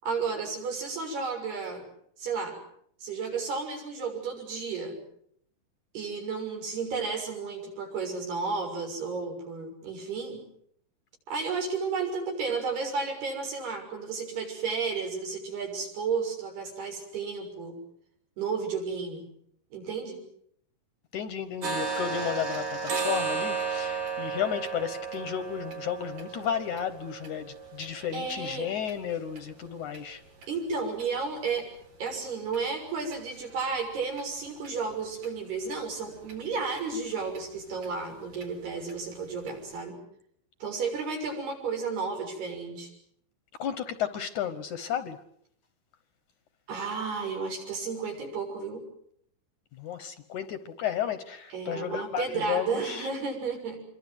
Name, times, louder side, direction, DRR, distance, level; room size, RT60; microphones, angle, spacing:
voice 1, 0.0-1.8 2.2-2.6 3.0-5.0 5.9-10.4 11.3-17.7 18.4-19.3 19.7-20.2 28.1-28.7 30.5-31.7 32.0-40.0 40.6-42.9 46.7-48.8 51.5-53.8, right 4 dB, 85° right, 2 dB, 8.4 m, -32 dB
voice 2, 21.1-30.2 43.6-45.2 49.8-53.1, left 9 dB, 65° left, 11 dB, 2.1 m, -33 dB
sound 1, 21.6-29.4 29.9-30.0 30.4-30.6 31.0-31.1 31.5-31.6 32.1-32.2 32.5-32.6 33.1-33.2 33.6-33.7 34.2-34.3 34.7-34.8 35.2-35.3 35.7-35.8 36.3-36.4 36.8-36.9 37.4-37.5 37.8-37.9 38.3-38.5 38.9-39.0 39.5-39.6, right 5 dB, 65° right, 5.5 m, -34 dB
27.0 x 23.0 x 7.9 m, 0.68 s
omnidirectional pair, 4.5 m